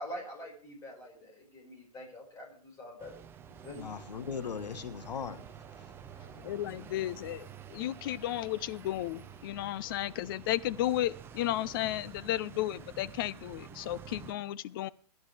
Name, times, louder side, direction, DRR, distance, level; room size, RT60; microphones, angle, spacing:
voice 1, 0.0-3.2 3.5-3.9, equal, 15° left, -2 dB, 5.3 m, -45 dB
sound 1, 3.0-14.3, right 8 dB, 10° right, 0.6 m, -49 dB
voice 2, 3.7-5.9, left 6 dB, 80° left, 11 dB, 1.5 m, -39 dB
voice 3, 6.2-14.9, left 14 dB, 35° left, 17 dB, 0.5 m, -34 dB
22.0 x 11.0 x 3.4 m, 0.43 s
hypercardioid pair, 145°, 21 cm